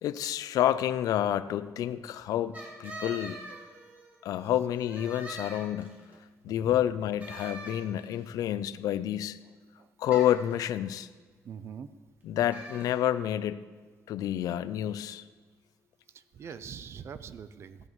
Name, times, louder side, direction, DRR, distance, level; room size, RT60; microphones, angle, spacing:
voice 1, 0.0-3.4 4.2-6.0 6.4-9.4 10.0-11.1 12.2-13.6 14.1-15.2, left 11 dB, 85° left, 15 dB, 0.4 m, -29 dB
sound 1, 2.5-4.2 4.7-6.1 7.2-8.2 10.1-10.5 12.5-12.9, right 1 dB, 30° right, 2.0 m, -43 dB
voice 2, 11.4-11.9 16.1-17.8, right 7 dB, 45° right, 13 dB, 0.4 m, -43 dB
14.0 x 10.5 x 3.1 m, 1.4 s
cardioid pair, 160°, 6 cm